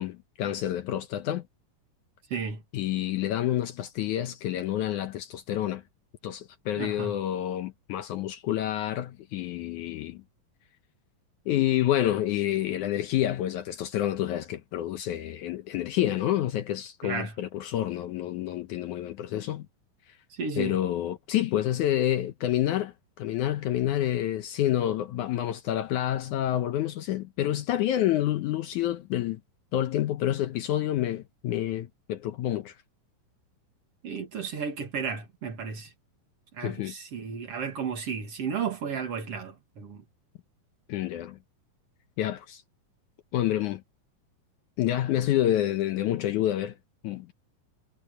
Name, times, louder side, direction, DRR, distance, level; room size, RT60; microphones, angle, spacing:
voice 1, 0.0-1.4 2.7-5.8 6.2-10.2 11.5-19.7 20.6-29.4 29.7-32.7 36.6-36.9 40.9-41.4 42.2-42.6 43.3-43.8 44.8-46.8 47.0-47.3, left 12 dB, 70° left, 2.0 m, -28 dB
voice 2, 2.3-2.6 6.8-7.1 17.0-17.3 20.3-20.8 34.0-35.9 36.6-40.0, right 6 dB, 50° right, 2.4 m, -33 dB
omnidirectional pair, 4.0 m